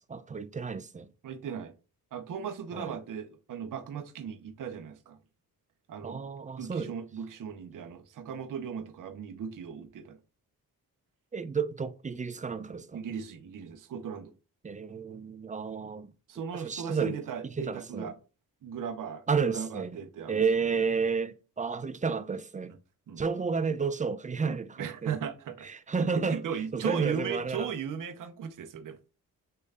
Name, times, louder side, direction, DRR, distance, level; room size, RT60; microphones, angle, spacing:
voice 1, 0.1-1.1 2.7-3.0 6.0-6.9 11.3-13.0 14.6-16.1 16.5-17.2 17.6-18.1 19.3-19.9 20.3-22.7 23.2-25.1 25.6-26.4 26.7-27.7, right 5 dB, 20° right, 0.4 m, -31 dB
voice 2, 1.2-1.7 2.1-5.2 5.9-6.3 6.6-10.2 12.9-14.3 16.3-18.2 18.6-20.4 23.1-23.2 24.5-25.7 26.0-29.0, right 7 dB, 55° right, 0.8 m, -37 dB
6.8 x 3.2 x 2.4 m
cardioid pair, 60°, 38 cm